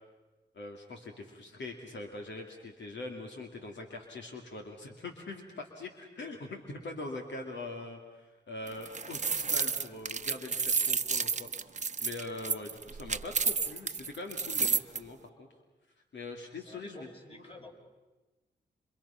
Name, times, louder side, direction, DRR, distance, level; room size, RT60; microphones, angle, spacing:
voice 1, 0.5-11.7 12.0-15.5 16.1-17.6, left 2 dB, 80° left, 2 dB, 2.6 m, -43 dB
sound 1, 8.7-15.0, right 5 dB, 40° right, 0.9 m, -31 dB
voice 2, 16.6-17.7, left 2 dB, 30° left, 1 dB, 5.5 m, -50 dB
29.5 x 26.0 x 5.8 m, 1.2 s
cardioid pair, 60°, 18 cm